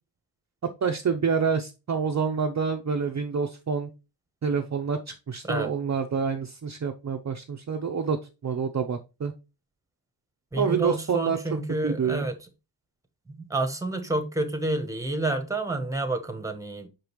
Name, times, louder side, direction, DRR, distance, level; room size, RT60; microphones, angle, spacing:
voice 1, 0.8-3.9 4.4-8.2 8.4-9.3 10.6-11.4 11.8-12.3, right 6 dB, 40° right, 0.6 m, -27 dB
voice 2, 10.5-12.3 13.3-16.9, right 2 dB, 5° right, 1.2 m, -29 dB
6.0 x 5.1 x 3.0 m
wide cardioid pair, 110°, 43 cm